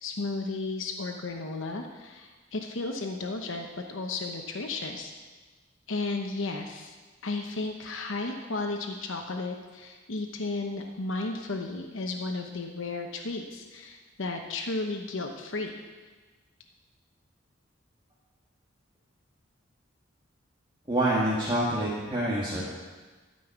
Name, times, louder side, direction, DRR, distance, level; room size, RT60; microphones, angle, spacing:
voice 1, 0.0-5.1 5.9-6.9 7.2-15.8, left 3 dB, 75° left, 3 dB, 0.9 m, -34 dB
voice 2, 20.9-22.6, right 1 dB, 25° right, -6 dB, 1.6 m, -26 dB
13.0 x 5.5 x 8.2 m, 1.3 s
head